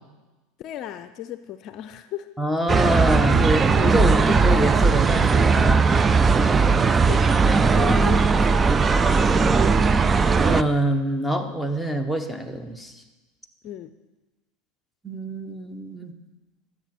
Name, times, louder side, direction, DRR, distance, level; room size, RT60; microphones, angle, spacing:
voice 1, 0.6-2.3 6.8-8.9 13.6-13.9, left 11 dB, 50° left, 12 dB, 0.5 m, -36 dB
voice 2, 2.4-5.8 7.9-8.0 9.3-9.6 10.4-13.0 15.0-16.1, equal, ahead, 7 dB, 1.2 m, -25 dB
sound 1, 2.7-10.6, right 4 dB, 20° right, 0.4 m, -18 dB
12.0 x 7.3 x 6.1 m, 1.1 s
hypercardioid pair, 95°, 0 cm